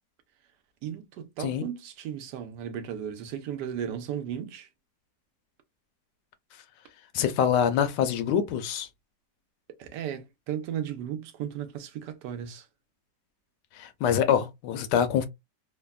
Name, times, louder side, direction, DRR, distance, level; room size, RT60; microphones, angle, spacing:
voice 1, 0.8-4.7 9.8-12.7, right 9 dB, 80° right, 1.2 m, -35 dB
voice 2, 7.1-8.9 13.8-15.2, left 8 dB, 90° left, 1.2 m, -25 dB
3.3 x 2.2 x 2.2 m
omnidirectional pair, 1.8 m